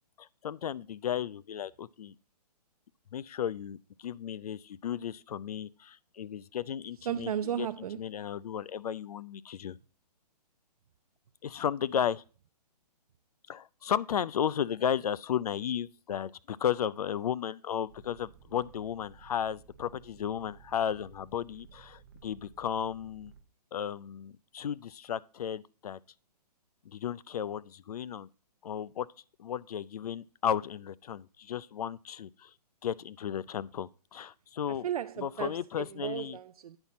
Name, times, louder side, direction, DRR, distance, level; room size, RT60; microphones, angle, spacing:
voice 1, 0.2-2.1 3.1-7.7 8.0-9.8 11.4-12.2 13.5-23.3 23.7-26.0 26.9-28.3 28.6-29.1 29.4-32.5 32.8-34.9 35.2-36.4, left 9 dB, 65° left, 0.5 m, -34 dB
voice 2, 7.1-8.1 34.7-36.8, right 10 dB, 60° right, 0.4 m, -35 dB
sound 1, 17.9-23.4, right 8 dB, 35° right, 0.8 m, -56 dB
8.9 x 5.8 x 4.1 m
hypercardioid pair, 170°, 21 cm